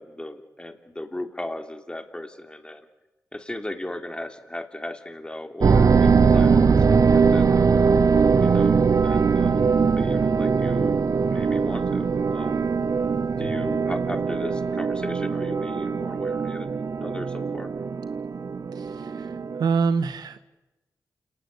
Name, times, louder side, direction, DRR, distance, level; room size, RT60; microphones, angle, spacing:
voice 1, 0.0-2.9 3.3-7.8 8.4-11.0 11.3-12.7 13.4-17.7, left 1 dB, 15° left, 6 dB, 2.9 m, -36 dB
sound 1, 5.6-19.6, right 5 dB, 55° right, 0.9 m, -21 dB
voice 2, 13.4-13.7 18.7-19.3 19.6-20.4, right 5 dB, 85° right, 11 dB, 1.4 m, -26 dB
29.0 x 18.5 x 8.2 m, 1.0 s
cardioid pair, 70°, 7 cm